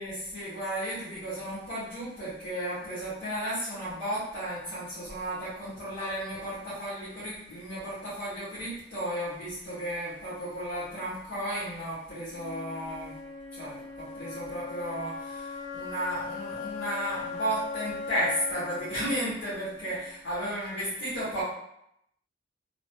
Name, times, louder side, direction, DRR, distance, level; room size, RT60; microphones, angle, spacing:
voice 1, 0.0-13.1 13.5-21.4, equal, 90° left, -10 dB, 1.4 m, -34 dB
Wind instrument woodwind instrument, 12.3-20.3, left 4 dB, 65° left, 0.9 m, -39 dB
3.0 x 2.6 x 3.0 m, 0.77 s
head